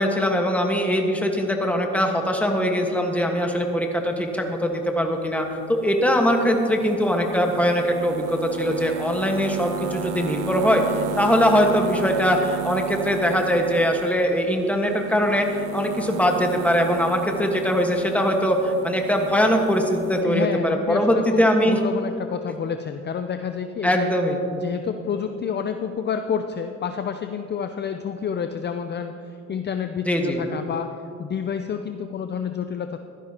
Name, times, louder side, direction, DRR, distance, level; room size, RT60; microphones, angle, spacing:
voice 1, 0.0-10.8 11.2-15.5 15.7-21.8 23.8-24.4 30.1-30.4, equal, 5° left, 2 dB, 1.5 m, -21 dB
sound 1, 5.4-20.2, right 10 dB, 85° right, 0.6 m, -35 dB
voice 2, 20.2-24.1 24.5-33.0, left 7 dB, 35° left, 7 dB, 0.5 m, -29 dB
15.5 x 12.0 x 2.9 m, 2.5 s
cardioid pair, 90°, 31 cm